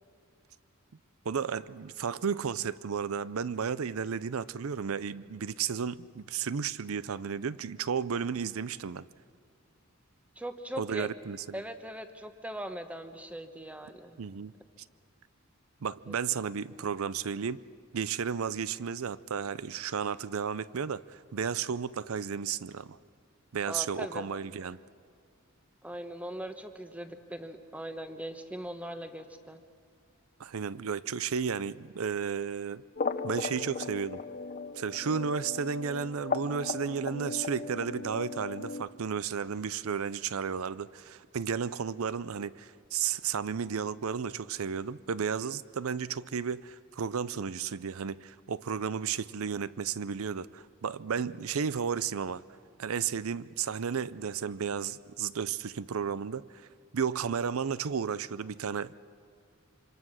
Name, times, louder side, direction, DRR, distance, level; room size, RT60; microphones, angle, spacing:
voice 1, 1.3-9.1 10.8-11.6 14.2-14.5 15.8-17.6 17.9-23.0 23.5-24.8 30.4-32.8 33.2-34.2 34.8-52.4 52.8-56.7 56.9-59.0, right 6 dB, 75° right, 0.5 m, -33 dB
voice 2, 10.4-11.1 11.5-14.2 16.1-16.8 23.6-24.3 25.8-29.6, right 1 dB, 5° right, 1.0 m, -40 dB
sound 1, 33.0-38.8, left 4 dB, 40° left, 0.6 m, -37 dB
26.5 x 26.0 x 6.4 m
head